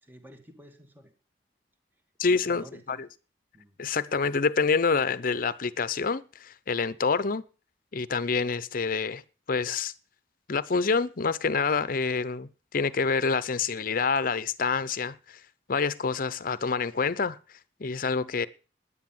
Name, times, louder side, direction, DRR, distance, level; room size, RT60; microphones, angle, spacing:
voice 1, 0.0-1.1 2.3-3.1 3.5-3.8, equal, 10° right, 1.6 m, -50 dB
voice 2, 2.2-3.0 3.8-7.4 7.9-9.2 9.5-9.9 10.5-15.4 15.7-17.4 17.8-18.5, left 5 dB, 50° left, 0.7 m, -27 dB
10.0 x 9.8 x 7.2 m
head